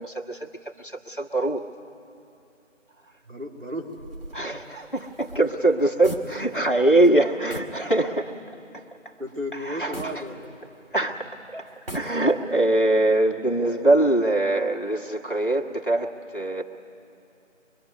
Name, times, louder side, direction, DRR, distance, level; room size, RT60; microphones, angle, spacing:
voice 1, 0.0-1.6 4.3-8.3 8.7-8.8 9.5-10.1 10.9-11.7 11.9-16.6, right 2 dB, 40° left, 0 dB, 1.4 m, -23 dB
voice 2, 3.3-3.9 4.5-4.8 9.2-10.6, equal, 85° right, 0 dB, 3.7 m, -34 dB
sound 1, 3.9-6.8 7.0-7.2 7.5-7.8 8.3-8.4 9.9-10.9 11.7-12.6, equal, 50° right, 2.1 m, -39 dB
24.0 x 23.0 x 9.4 m, 2.8 s
figure-of-eight pair, 175°, 38 cm